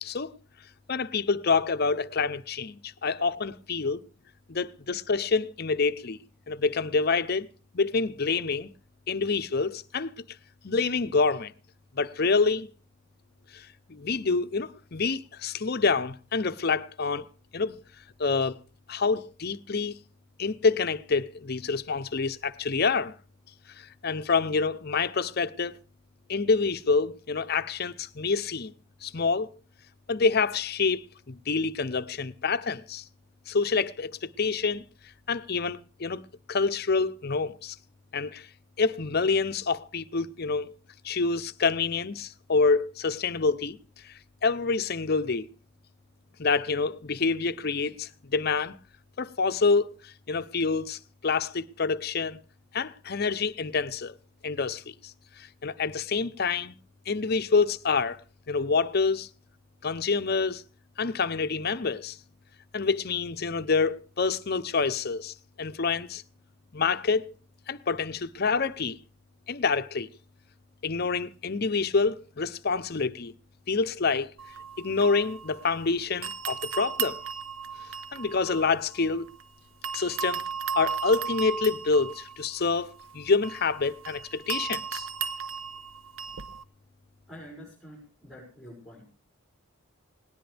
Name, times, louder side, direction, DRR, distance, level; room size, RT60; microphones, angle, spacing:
voice 1, 0.0-0.3 0.9-4.0 4.5-6.2 6.5-7.5 7.7-8.7 9.1-10.1 10.6-11.5 11.9-12.7 13.5-17.3 17.5-17.8 18.2-18.6 18.9-20.0 20.4-23.1 23.7-25.8 26.3-28.7 29.0-29.5 30.1-33.1 33.5-34.8 35.3-36.2 36.5-37.8 38.1-38.5 38.8-40.7 41.0-43.8 44.0-45.5 46.4-48.8 49.2-52.4 52.7-54.1 54.4-56.8 57.1-58.2 58.5-59.3 59.8-60.6 61.0-62.2 62.7-66.2 66.7-67.3 67.7-69.0 69.5-70.1 70.8-73.3 73.7-74.3 74.8-77.2 78.1-79.3 79.9-80.5 80.7-85.1, left 4 dB, 50° left, 0.7 m, -27 dB
sound 1, 74.4-75.9 76.2-79.4 79.8-86.6, right 6 dB, 80° right, 0.9 m, -36 dB
voice 2, 87.3-89.1, equal, ahead, 6.1 m, -47 dB
18.5 x 18.5 x 3.4 m
head